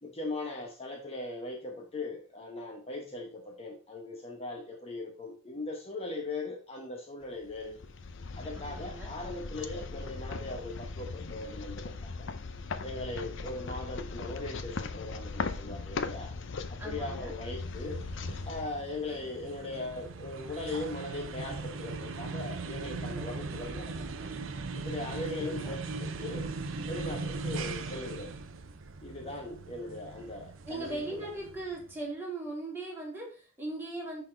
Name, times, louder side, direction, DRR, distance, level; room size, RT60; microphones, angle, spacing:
voice 1, 0.0-7.9 8.4-12.3 12.8-16.3 16.7-18.0 18.5-23.9 24.2-24.4 24.7-26.5 26.9-28.3 29.0-31.3, left 2 dB, 30° left, 2 dB, 1.0 m, -39 dB
sound 1, 7.4-19.5, left 4 dB, 65° left, 0.6 m, -39 dB
voice 2, 8.5-9.1 16.8-17.3 25.4-25.8 30.6-34.2, right 2 dB, 10° right, -4 dB, 2.9 m, -39 dB
sound 2, 17.4-31.9, right 3 dB, 70° right, 0.7 m, -39 dB
10.0 x 4.1 x 3.8 m, 0.37 s
head